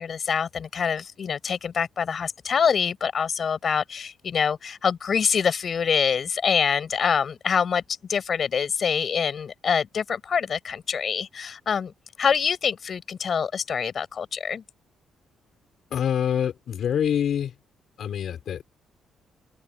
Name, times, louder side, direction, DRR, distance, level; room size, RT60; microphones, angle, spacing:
voice 1, 0.0-7.8 8.1-11.9 12.2-14.6, left 6 dB, 50° left, 7.0 m, -25 dB
voice 2, 15.9-17.5 18.0-18.6, left 9 dB, 65° left, 6.1 m, -25 dB
open air
cardioid pair, 90°, 0 cm